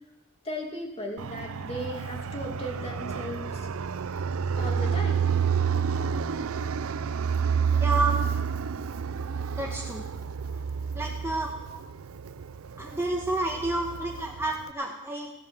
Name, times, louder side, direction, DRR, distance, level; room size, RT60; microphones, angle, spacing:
voice 1, 0.4-3.7 4.6-5.3 11.7-11.8, equal, 30° left, 1 dB, 2.5 m, -36 dB
Fixed-wing aircraft airplane, 1.2-14.7, right 6 dB, 75° right, 0.5 m, -29 dB
voice 2, 7.8-8.4 9.5-10.0 10.9-11.5 12.8-15.3, right 2 dB, 10° right, 0 dB, 1.2 m, -30 dB
16.0 x 7.6 x 7.6 m, 0.90 s
head